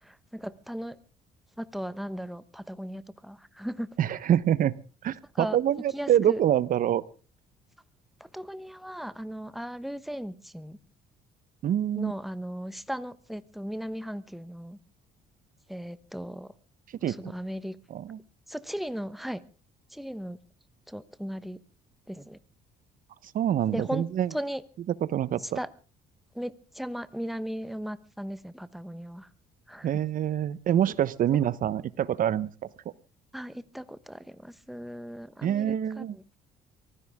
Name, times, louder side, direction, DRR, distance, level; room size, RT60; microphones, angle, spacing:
voice 1, 0.0-1.0 1.6-4.0 5.3-5.6 5.9-6.4 8.2-10.8 11.9-14.8 15.7-16.5 17.0-17.8 18.5-19.4 19.9-20.4 20.9-21.6 22.1-22.4 23.7-24.6 25.4-25.7 26.3-29.3 29.7-30.0 31.3-31.5 33.3-36.4, equal, ahead, 14 dB, 1.1 m, -37 dB
voice 2, 4.0-4.7 5.0-7.0 11.6-12.1 17.0-17.3 17.9-18.2 23.3-24.3 25.1-25.6 29.8-32.5 35.4-36.2, right 10 dB, 55° right, 18 dB, 1.0 m, -26 dB
23.5 x 15.5 x 3.6 m, 0.36 s
cardioid pair, 110°, 17 cm